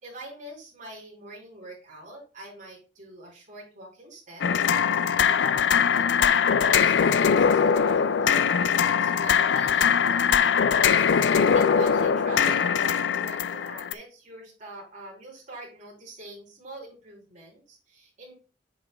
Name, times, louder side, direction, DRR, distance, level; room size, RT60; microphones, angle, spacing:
voice 1, 0.0-4.6 5.3-10.8 11.1-18.3, right 1 dB, 45° right, -2 dB, 3.4 m, -44 dB
sound 1, 4.4-13.9, left 7 dB, 90° left, 0.4 m, -21 dB
7.7 x 5.5 x 2.3 m, 0.35 s
head